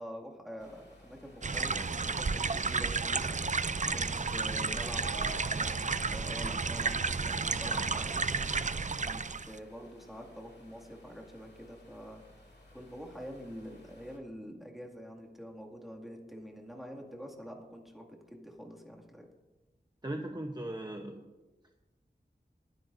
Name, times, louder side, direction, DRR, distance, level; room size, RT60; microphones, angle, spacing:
voice 1, 0.0-3.3 3.6-8.4 9.0-12.2 12.7-19.3, equal, ahead, 0 dB, 2.3 m, -46 dB
sound 1, 0.6-14.2, left 2 dB, 70° left, 2.4 m, -58 dB
sound 2, 1.4-9.6, right 4 dB, 40° right, 0.4 m, -32 dB
Piano, 5.0-8.1 8.6-8.8 9.1-9.2 9.9-10.0 10.6-10.7, right 2 dB, 20° left, 2.3 m, -50 dB
voice 2, 20.0-21.2, right 1 dB, 25° right, 3 dB, 0.9 m, -38 dB
21.0 x 10.5 x 2.7 m, 1.1 s
wide cardioid pair, 50°, 18 cm